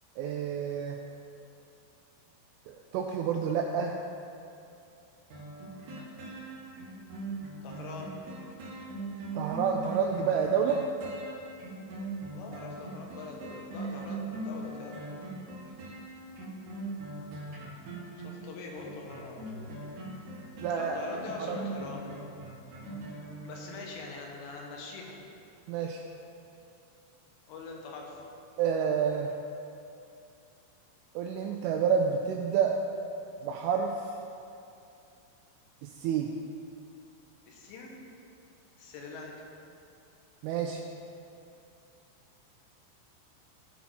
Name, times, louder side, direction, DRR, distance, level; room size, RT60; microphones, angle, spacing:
voice 1, 0.2-1.0 2.7-4.0 9.4-10.8 20.6-21.0 21.4-21.6 25.7-26.0 28.6-29.3 31.2-32.8 33.4-34.1 35.8-36.3 40.4-40.8, right 7 dB, 85° right, 2 dB, 2.9 m, -29 dB
sound 1, 5.3-24.0 24.4-24.5, right 2 dB, 65° right, 2.0 m, -41 dB
voice 2, 7.6-8.1 12.3-15.0 18.2-19.7 20.7-22.2 23.5-25.2 27.5-28.2 37.5-37.9 38.8-39.3, left 3 dB, 75° left, 0 dB, 3.6 m, -43 dB
16.0 x 5.9 x 4.3 m, 2.6 s
omnidirectional pair, 6.0 m